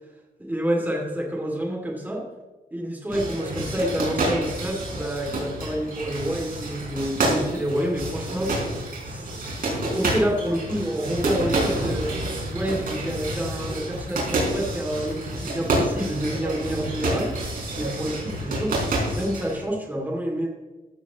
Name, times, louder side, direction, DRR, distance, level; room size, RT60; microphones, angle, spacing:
voice 1, 0.4-2.2 2.7-8.5 9.0-12.1 12.5-17.3 17.8-20.5, equal, 10° right, -1 dB, 2.7 m, -28 dB
sound 1, 3.1-19.6, right 1 dB, 65° right, 4.6 m, -28 dB
14.5 x 12.5 x 3.1 m, 1.2 s
wide cardioid pair, 145°, 16 cm